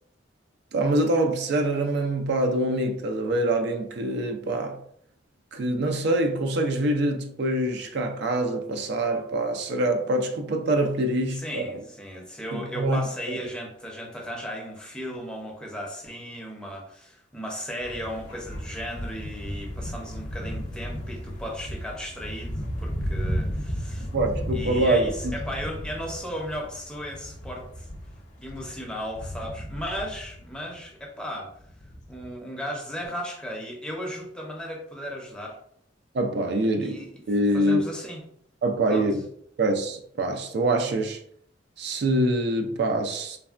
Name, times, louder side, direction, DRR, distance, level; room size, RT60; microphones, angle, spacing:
voice 1, 0.7-4.8 5.5-11.7 12.5-13.0 13.3-13.4 24.0-25.3 36.1-37.8 38.6-39.2 39.6-41.2 41.8-43.4, right 1 dB, 65° right, 0.4 m, -25 dB
voice 2, 11.3-24.1 24.5-27.9 28.4-31.5 32.1-35.6 36.8-37.1 37.5-38.2 38.9-39.1, equal, 5° left, 0.5 m, -36 dB
sound 1, 17.8-30.9 31.6-32.4, equal, 40° left, 0.7 m, -34 dB
3.3 x 2.1 x 2.4 m
head